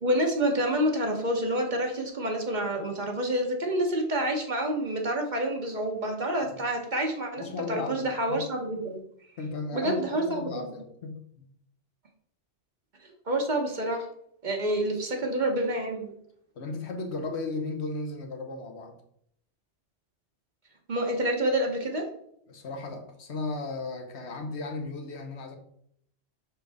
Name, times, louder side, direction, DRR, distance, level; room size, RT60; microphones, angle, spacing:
voice 1, 0.0-7.4 7.7-9.0 9.7-10.6 13.3-14.1 14.4-16.1 20.9-22.1, right 1 dB, 45° right, 2 dB, 0.9 m, -28 dB
voice 2, 7.4-8.4 9.4-11.5 16.5-18.9 22.5-25.6, left 3 dB, 70° left, 5 dB, 1.2 m, -35 dB
6.2 x 4.5 x 3.4 m, 0.70 s
omnidirectional pair, 1.2 m